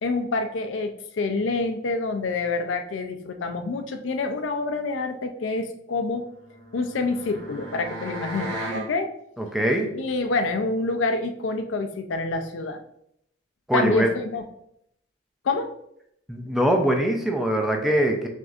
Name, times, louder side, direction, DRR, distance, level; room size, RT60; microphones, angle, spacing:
voice 1, 0.0-6.3 6.7-9.1 9.9-12.8 13.7-14.4 15.4-15.7, left 3 dB, 75° left, 6 dB, 0.4 m, -27 dB
sound 1, 6.3-8.9, right 1 dB, 90° right, 1.0 m, -35 dB
voice 2, 9.4-9.9 13.7-14.1 16.3-18.3, right 1 dB, ahead, 2 dB, 0.4 m, -22 dB
6.1 x 2.6 x 2.4 m, 0.75 s
head